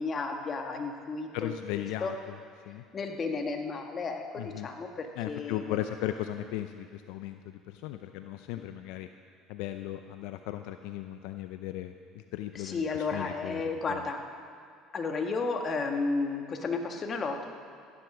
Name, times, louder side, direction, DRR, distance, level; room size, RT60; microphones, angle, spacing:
voice 1, 0.0-2.1 2.9-5.8 12.5-14.2 14.9-17.5, left 4 dB, 40° left, 4 dB, 1.8 m, -33 dB
voice 2, 1.3-2.4 2.7-2.8 4.4-4.7 5.2-9.1 9.5-13.6 13.9-14.0, left 13 dB, 75° left, 8 dB, 0.5 m, -37 dB
14.5 x 10.5 x 6.2 m, 2.2 s
supercardioid pair, 80°, 0 cm